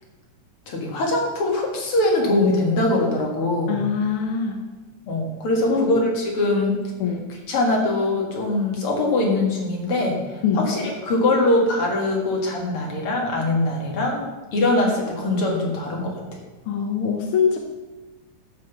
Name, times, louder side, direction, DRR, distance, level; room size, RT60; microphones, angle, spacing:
voice 1, 0.7-3.8 5.1-6.7 7.5-16.4, left 2 dB, 50° left, 0 dB, 2.7 m, -22 dB
voice 2, 3.7-4.6 5.7-5.9 7.0-7.2 10.4-10.7 16.7-17.6, left 6 dB, 65° left, 2 dB, 1.4 m, -23 dB
13.0 x 4.9 x 7.0 m, 1.2 s
omnidirectional pair, 3.5 m